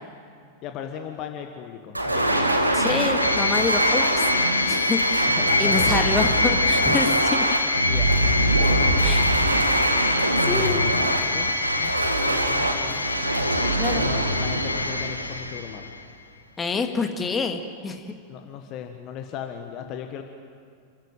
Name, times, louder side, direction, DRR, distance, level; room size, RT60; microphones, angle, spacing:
voice 1, 0.6-2.4 5.3-6.0 7.9-9.2 10.5-11.5 11.8-11.9 12.2-13.1 13.9-15.9 18.3-20.2, left 9 dB, 40° left, 6 dB, 1.4 m, -37 dB
sound 1, 1.9-15.8, right 1 dB, 85° right, 1.7 m, -24 dB
voice 2, 2.7-4.3 4.6-7.6 9.0-9.3 10.4-10.9 13.8-14.1 16.6-18.2, left 4 dB, 20° left, 6 dB, 1.9 m, -27 dB
sound 2, 3.2-16.0, left 2 dB, 80° left, 1.1 m, -25 dB
29.0 x 14.0 x 9.0 m, 2.2 s
figure-of-eight pair, 90°, 0 cm